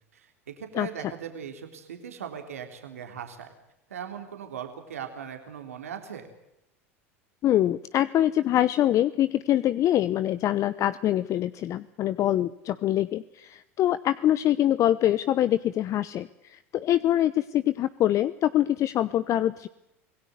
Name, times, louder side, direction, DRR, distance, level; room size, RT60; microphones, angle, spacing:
voice 1, 0.1-3.5 3.9-6.3, right 8 dB, 90° right, 5 dB, 3.4 m, -39 dB
voice 2, 7.4-19.7, left 12 dB, 45° left, 15 dB, 0.9 m, -24 dB
26.5 x 18.0 x 8.0 m, 0.87 s
hypercardioid pair, 90°, 8 cm